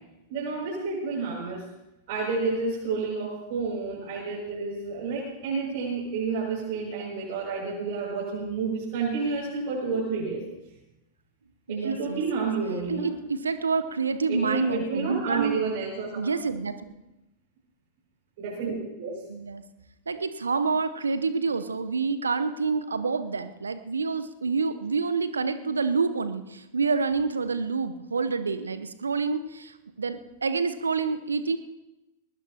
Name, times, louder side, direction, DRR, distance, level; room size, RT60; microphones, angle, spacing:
voice 1, 0.3-1.6 2.1-10.4 11.7-13.1 14.3-16.2 18.4-19.2, right 4 dB, 50° right, -4 dB, 6.4 m, -30 dB
voice 2, 11.7-12.2 12.9-15.6 16.2-16.8 19.3-19.6 20.1-31.6, right 4 dB, 75° right, 11 dB, 0.8 m, -28 dB
21.5 x 19.5 x 2.9 m, 0.96 s
figure-of-eight pair, 95°, 0 cm